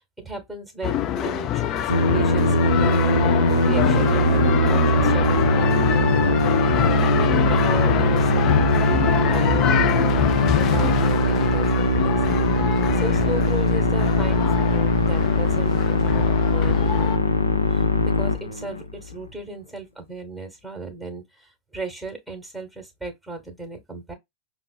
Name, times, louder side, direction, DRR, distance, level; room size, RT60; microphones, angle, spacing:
voice 1, 0.0-10.2 10.5-12.2 12.5-17.2 17.7-17.9 18.2-24.1, right 3 dB, ahead, 1.1 m, -36 dB
sound 1, 0.8-17.2, left 11 dB, 35° left, 0.3 m, -25 dB
Musical instrument, 1.9-19.0, left 1 dB, 75° left, 0.6 m, -20 dB
5.8 x 2.0 x 2.2 m
figure-of-eight pair, 90°, 0 cm